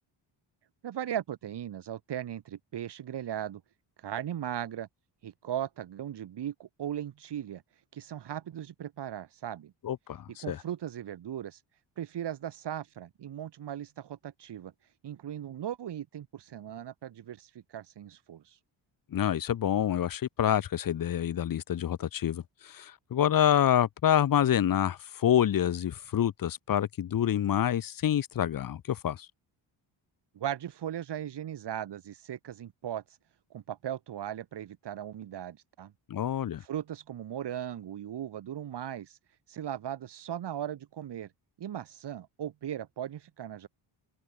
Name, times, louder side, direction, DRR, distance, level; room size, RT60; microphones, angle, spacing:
voice 1, 0.8-3.6 4.0-4.9 5.2-9.7 10.4-11.6 12.0-18.6 30.3-33.2 33.5-35.9 36.6-41.3 41.6-43.7, right 10 dB, 60° right, 4.3 m, -38 dB
voice 2, 9.8-10.6 19.1-29.3 36.1-36.6, left 10 dB, 45° left, 1.3 m, -27 dB
open air
cardioid pair, 160°, 47 cm